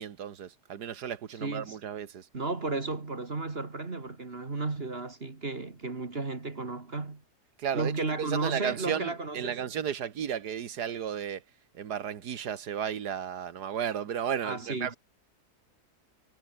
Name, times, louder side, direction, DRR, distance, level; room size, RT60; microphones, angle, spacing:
voice 1, 0.0-2.3 7.6-11.4 11.7-14.9, right 8 dB, 80° right, 1.9 m, -34 dB
voice 2, 1.4-1.8 2.3-7.2 7.7-9.6 14.4-15.0, right 3 dB, 35° right, 2.3 m, -34 dB
omnidirectional pair, 1.7 m